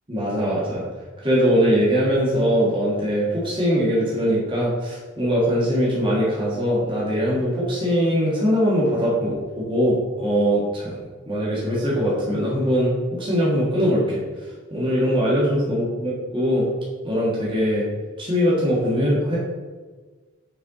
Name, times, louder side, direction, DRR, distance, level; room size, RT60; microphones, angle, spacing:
voice 1, 0.1-0.9 1.2-11.0 11.3-14.2 14.7-16.7 17.0-17.9 18.2-19.4, equal, 25° right, -6 dB, 1.4 m, -21 dB
6.2 x 4.4 x 4.0 m, 1.4 s
head